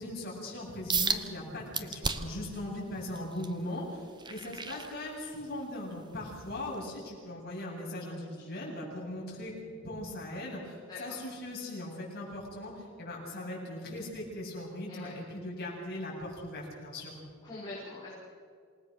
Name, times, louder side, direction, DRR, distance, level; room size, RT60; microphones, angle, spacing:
voice 1, 0.0-17.2, left 1 dB, 45° left, -4 dB, 7.8 m, -39 dB
sound 1, 0.9-1.2 1.7-2.4 2.9-5.5 6.0-6.2 6.8-6.9, right 5 dB, 20° right, 0.9 m, -33 dB
voice 2, 8.3-8.8 10.9-11.2 14.9-15.2 17.4-18.1, left 2 dB, 20° left, -8 dB, 5.9 m, -44 dB
27.5 x 19.0 x 6.7 m, 2.1 s
head